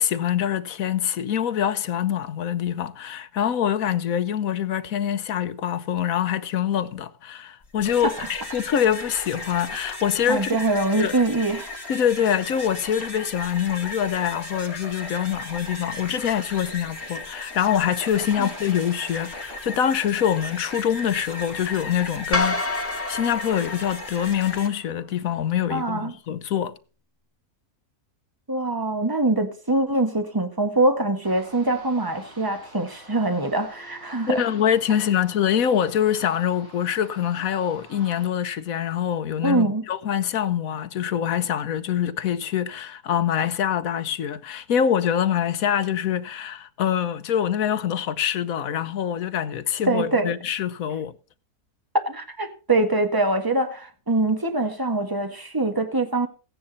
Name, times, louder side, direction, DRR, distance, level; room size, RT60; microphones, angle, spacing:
voice 1, 0.0-10.5 11.0-11.1 11.9-26.7 34.3-51.1, left 9 dB, 70° left, 1.2 m, -25 dB
sound 1, 7.6-24.7, left 2 dB, 40° left, 2.6 m, -36 dB
voice 2, 10.3-11.7 18.4-18.5 25.7-26.1 28.5-34.5 39.4-39.8 49.9-50.3 52.0-56.3, right 2 dB, 15° right, 1.6 m, -23 dB
sound 2, 22.3-24.7, left 2 dB, 10° left, 1.6 m, -28 dB
sound 3, 31.2-38.3, right 1 dB, 60° right, 6.9 m, -48 dB
16.0 x 9.7 x 4.1 m
omnidirectional pair, 1.6 m